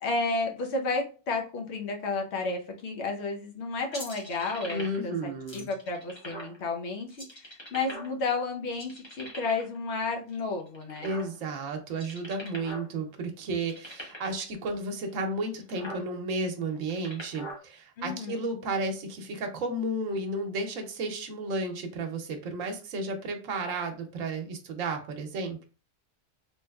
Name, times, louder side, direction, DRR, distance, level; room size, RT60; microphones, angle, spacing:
voice 1, 0.0-11.1 18.0-18.4, left 3 dB, 60° left, 2 dB, 1.0 m, -32 dB
sound 1, 3.9-5.1 5.5-6.6 7.1-8.3 8.7-9.8 10.3-11.5 11.9-12.9 13.1-13.2 13.5-14.4 15.1-15.2 15.5-16.0 16.7-17.6, equal, 25° left, 1.0 m, -41 dB
voice 2, 4.7-5.7 11.0-25.7, right 2 dB, 85° right, 4 dB, 1.1 m, -33 dB
3.1 x 3.1 x 2.2 m, 0.34 s
omnidirectional pair, 1.3 m